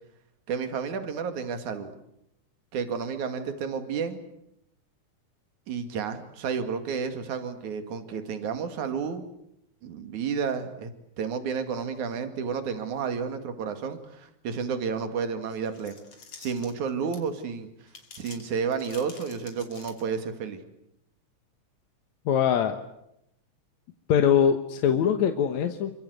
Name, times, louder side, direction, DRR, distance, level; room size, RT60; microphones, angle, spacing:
voice 1, 0.5-1.9 2.7-4.2 5.7-9.2 9.8-10.9 11.2-16.0 16.4-17.7 18.2-20.6, right 6 dB, 75° right, 8 dB, 3.6 m, -31 dB
sound 1, 15.5-17.4 17.9-20.3, left 5 dB, 50° left, 3.8 m, -48 dB
voice 2, 22.3-22.8 24.1-25.9, left 8 dB, 70° left, 7 dB, 2.5 m, -22 dB
27.5 x 24.5 x 8.1 m, 0.81 s
omnidirectional pair, 3.5 m